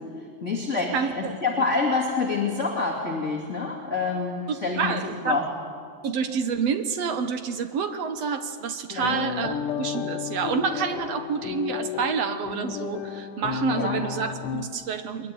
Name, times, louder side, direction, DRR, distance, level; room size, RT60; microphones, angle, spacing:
voice 1, 0.4-5.5 8.9-9.2 13.8-14.0, left 4 dB, 25° left, -3 dB, 2.4 m, -27 dB
voice 2, 0.9-1.3 4.5-5.5 6.0-15.3, right 6 dB, 65° right, 8 dB, 1.7 m, -28 dB
sound 1, 9.0-14.6, left 9 dB, 70° left, 2.3 m, -32 dB
23.0 x 21.5 x 9.4 m, 2.2 s
omnidirectional pair, 4.0 m